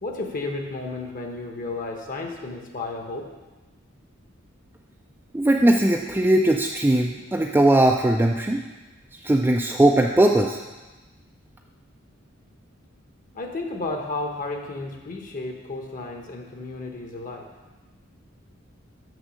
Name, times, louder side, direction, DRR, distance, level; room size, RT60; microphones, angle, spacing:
voice 1, 0.0-3.3 13.3-17.5, left 2 dB, 40° left, 2 dB, 1.0 m, -32 dB
voice 2, 5.3-8.6 9.2-10.6, right 1 dB, 10° right, 1 dB, 0.4 m, -19 dB
6.3 x 6.2 x 6.3 m, 1.2 s
head